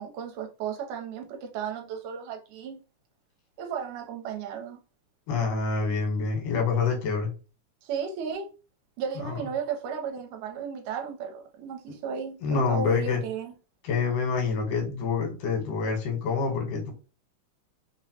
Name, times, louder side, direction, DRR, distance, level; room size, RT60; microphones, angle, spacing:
voice 1, 0.0-2.8 3.6-4.8 7.8-8.5 9.0-13.5, right 6 dB, 80° right, 2.0 m, -34 dB
voice 2, 5.3-7.3 9.2-9.4 12.4-13.2 13.8-16.9, left 5 dB, 85° left, 2.6 m, -27 dB
5.2 x 2.0 x 2.7 m
omnidirectional pair, 3.6 m